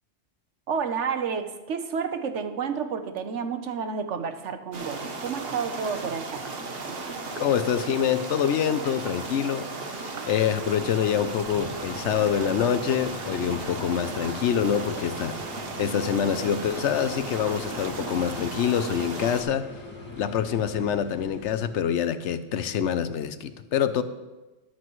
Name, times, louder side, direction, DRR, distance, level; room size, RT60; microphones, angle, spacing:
voice 1, 0.7-6.5, right 6 dB, 75° right, 8 dB, 1.2 m, -30 dB
sound 1, 4.7-19.4, right 3 dB, 55° right, 1.2 m, -36 dB
voice 2, 7.4-19.7 20.2-24.0, left 8 dB, 75° left, 12 dB, 1.0 m, -26 dB
sound 2, 10.5-21.8, left 3 dB, 10° left, 2.0 m, -42 dB
13.5 x 11.5 x 3.1 m, 1.1 s
omnidirectional pair, 1.2 m